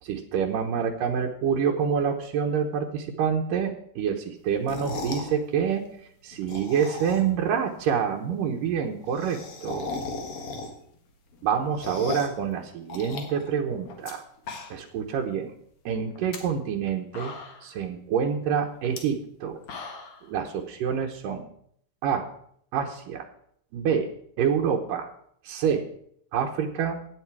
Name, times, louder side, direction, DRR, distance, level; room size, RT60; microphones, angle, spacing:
voice 1, 0.0-5.9 6.2-10.0 11.4-14.2 14.7-15.5 15.9-17.3 17.6-19.6 20.3-21.5 22.0-22.3 22.7-23.3 23.7-24.1 24.4-25.1 25.4-25.9 26.3-27.0, right 7 dB, 85° right, 2 dB, 2.8 m, -27 dB
sound 1, 4.5-5.3 6.3-7.4 7.8-7.9 8.1-8.2 8.4-8.5 8.7-11.0 11.3-12.4 12.9-14.1 14.4-15.0 15.3-15.4 16.1-16.4 16.9-17.0 17.1-17.8 18.8-19.0 19.4-20.2, left 4 dB, 50° left, 2.5 m, -37 dB
16.0 x 9.7 x 4.7 m, 0.65 s
omnidirectional pair, 3.8 m